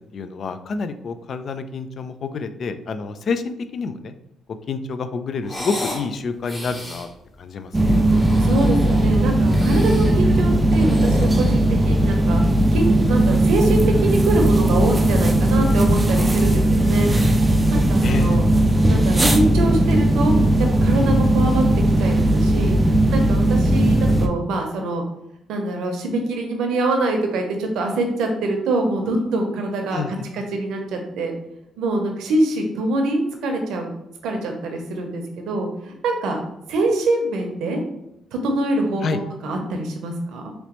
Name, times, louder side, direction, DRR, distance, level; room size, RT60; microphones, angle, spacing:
voice 1, 0.1-4.1 4.7-7.1 7.4-8.0 18.0-18.4 29.9-30.3 39.0-39.2, left 4 dB, 55° left, 10 dB, 0.3 m, -28 dB
sound 1, 5.4-6.1 6.4-7.1 7.9-9.1 9.5-10.2 10.6-12.1, left 1 dB, 30° left, 1.4 m, -33 dB
sound 2, 7.7-24.3, right 1 dB, 20° right, 0.4 m, -17 dB
voice 2, 8.4-12.4 12.7-17.1 17.7-18.4 18.9-20.3 20.6-21.6 22.0-22.8 23.1-25.0 25.5-31.3 31.8-33.9 34.2-37.8 38.3-40.5, right 2 dB, 85° right, 3 dB, 0.7 m, -24 dB
3.0 x 3.0 x 2.9 m, 0.81 s
cardioid pair, 90°, 0 cm